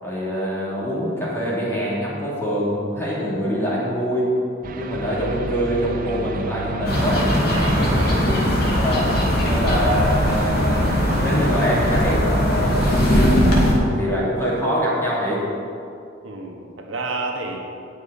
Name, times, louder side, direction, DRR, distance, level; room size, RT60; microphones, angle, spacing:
voice 1, 0.0-4.3 4.7-7.4 7.7-9.1 9.4-10.8 11.2-15.4, equal, 15° left, -7 dB, 3.0 m, -25 dB
sound 1, 4.6-12.2, right 2 dB, 45° right, 0.6 m, -31 dB
voice 2, 4.9-5.3 7.5-8.2 16.2-17.6, right 3 dB, 75° right, 0 dB, 1.4 m, -30 dB
sound 2, 6.8-13.7, equal, 50° left, 2.5 m, -19 dB
18.5 x 6.6 x 4.2 m, 2.5 s
head